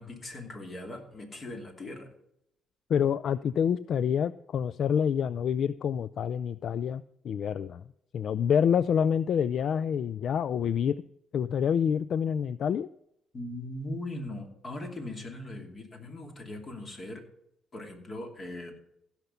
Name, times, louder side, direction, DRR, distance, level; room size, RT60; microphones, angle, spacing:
voice 1, 0.0-2.1 13.3-17.2 17.7-18.7, left 1 dB, 40° left, 3 dB, 2.6 m, -39 dB
voice 2, 2.9-7.8 8.1-11.0 11.3-12.9, left 8 dB, 65° left, 17 dB, 0.3 m, -27 dB
15.5 x 5.9 x 5.6 m, 0.78 s
cardioid pair, 90°, 0 cm